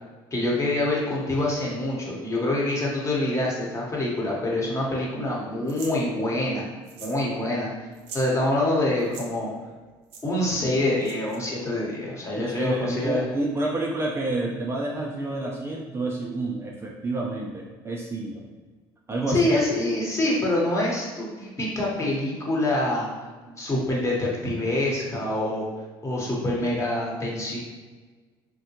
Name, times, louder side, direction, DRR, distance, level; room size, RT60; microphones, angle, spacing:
voice 1, 0.3-6.7 7.0-7.9 8.1-9.5 10.2-13.3 19.3-23.1 23.6-25.7 26.0-27.6, left 1 dB, 25° left, -4 dB, 1.1 m, -25 dB
sound 1, 5.7-6.0 6.9-7.2 7.5-7.6 7.9-8.3 9.0-9.3 10.1-10.2 11.0-11.4, right 4 dB, 70° right, 0.6 m, -41 dB
voice 2, 12.4-18.5 19.1-19.5 23.5-23.6, right 2 dB, 20° right, -2 dB, 0.4 m, -29 dB
3.5 x 2.2 x 2.9 m, 1.3 s
supercardioid pair, 75°, 11 cm